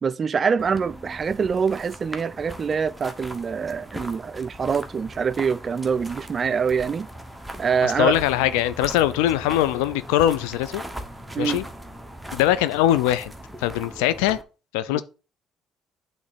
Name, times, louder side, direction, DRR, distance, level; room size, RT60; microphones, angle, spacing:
voice 1, 0.0-7.1 7.6-8.2 11.3-11.6 14.9-15.0, right 6 dB, 40° right, 0.3 m, -25 dB
sound 1, 0.6-14.4, right 1 dB, 5° right, 1.0 m, -39 dB
voice 2, 7.8-10.8 11.4-11.6 12.3-13.3 13.6-14.4 14.7-15.0, left 13 dB, 85° left, 0.4 m, -22 dB
8.6 x 3.1 x 4.1 m
supercardioid pair, 65°, 0 cm